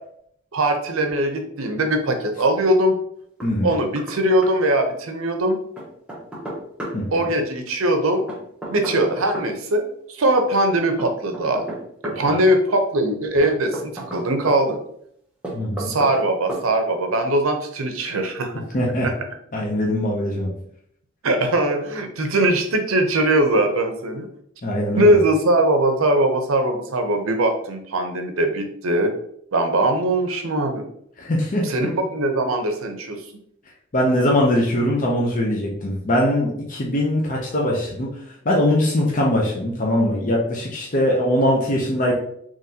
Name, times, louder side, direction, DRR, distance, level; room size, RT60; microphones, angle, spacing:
voice 1, 0.5-2.9 3.6-5.6 7.1-8.2 8.7-9.8 10.1-11.6 12.2-14.8 15.8-18.6 19.0-19.1 21.2-24.3 25.0-29.1 29.5-30.8 31.6-33.2, right 1 dB, 85° right, 5 dB, 0.7 m, -21 dB
voice 2, 3.4-3.7 6.9-7.2 12.2-12.3 15.5-15.9 18.7-19.1 19.5-20.5 24.6-25.2 31.2-31.6 33.9-38.1 38.4-42.1, left 1 dB, 40° left, -3 dB, 0.6 m, -21 dB
Knock, 3.4-4.2 4.4-4.5 5.8-7.0 8.3-9.5 11.0-12.2 13.4-14.6 15.4-16.2 16.5-16.7, right 1 dB, 5° right, 0.7 m, -32 dB
3.8 x 3.1 x 2.8 m, 0.69 s
head